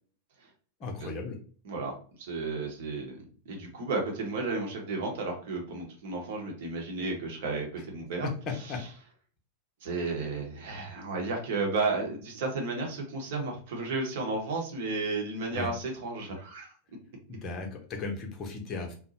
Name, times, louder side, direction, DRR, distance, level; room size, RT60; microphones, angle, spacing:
voice 1, 0.8-1.4 8.5-8.8 15.5-15.7 17.3-18.9, left 3 dB, 30° left, 1 dB, 0.7 m, -36 dB
voice 2, 1.6-3.2 3.4-8.3 9.8-16.7, right 3 dB, 55° right, 1 dB, 0.9 m, -33 dB
2.6 x 2.1 x 2.7 m, 0.43 s
figure-of-eight pair, 90°, 0 cm